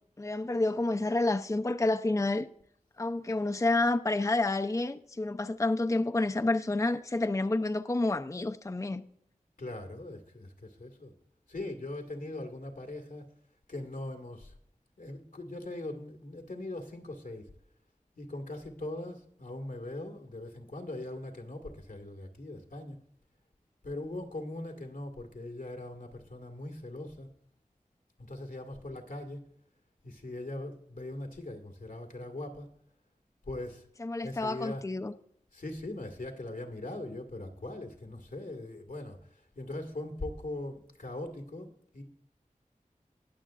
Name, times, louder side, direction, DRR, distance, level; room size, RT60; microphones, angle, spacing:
voice 1, 0.2-2.5 3.0-9.0 34.0-35.1, left 2 dB, 25° left, 0.5 m, -29 dB
voice 2, 9.6-11.1 11.5-13.3 13.7-14.6 15.0-17.5 18.2-23.0 23.8-27.3 28.2-29.4 30.0-32.7 33.4-33.9 34.2-34.8 35.5-42.0, left 2 dB, 85° left, 1.8 m, -40 dB
20.0 x 7.1 x 2.4 m
wide cardioid pair, 55°, 14 cm